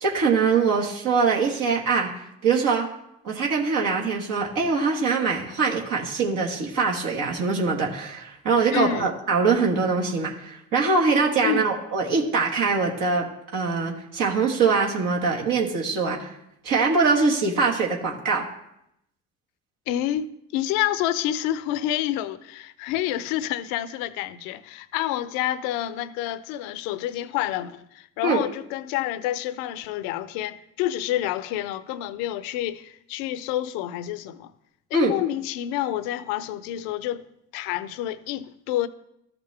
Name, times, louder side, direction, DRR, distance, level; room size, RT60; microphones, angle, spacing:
voice 1, 0.0-2.1 2.4-2.9 3.2-16.3 16.6-18.5 28.2-28.4 34.9-35.1, right 4 dB, 65° right, 1.6 m, -23 dB
voice 2, 8.7-9.1 11.4-11.7 19.9-34.5 34.9-37.2 37.5-38.9, left 13 dB, 75° left, 0.6 m, -28 dB
13.0 x 5.9 x 3.4 m
hypercardioid pair, 55°, 35 cm